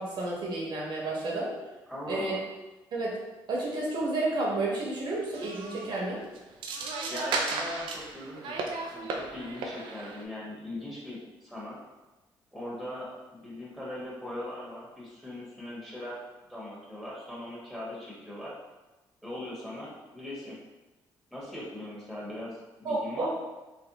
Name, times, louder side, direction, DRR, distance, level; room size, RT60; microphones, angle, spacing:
voice 1, 0.0-1.5 2.1-2.4 2.9-3.2 3.5-6.2 22.8-23.3, right 2 dB, 65° right, -3 dB, 1.1 m, -31 dB
voice 2, 1.9-2.4 7.1-8.6 8.9-11.8 12.5-16.2 16.5-18.6 19.2-20.6 21.3-23.3, left 1 dB, 5° left, -6 dB, 1.5 m, -40 dB
sound 1, 5.1-5.2 5.3-6.0 6.3-10.2, right 3 dB, 80° right, 0.5 m, -35 dB
3.4 x 3.3 x 2.9 m, 1.1 s
cardioid pair, 75°, 8 cm